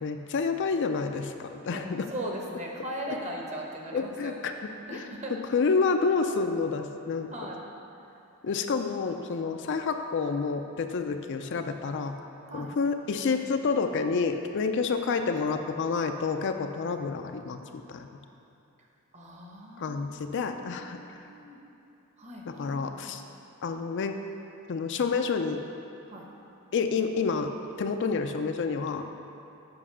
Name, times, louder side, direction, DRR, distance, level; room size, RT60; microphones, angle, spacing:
voice 1, 0.0-2.1 3.1-3.2 3.9-4.5 4.9-5.0 5.3-7.3 8.4-12.2 12.5-18.1 19.8-21.2 22.5-23.2 23.6-24.2 24.7-25.6 26.7-27.5 27.8-29.2, left 4 dB, 55° left, 6 dB, 0.4 m, -29 dB
voice 2, 1.7-4.5 4.9-5.3 7.3-7.6 12.5-12.7 14.8-14.9 19.1-21.6 22.2-23.1 26.1-26.3, right 1 dB, 30° right, -1 dB, 1.0 m, -39 dB
7.9 x 5.3 x 6.1 m, 2.8 s
head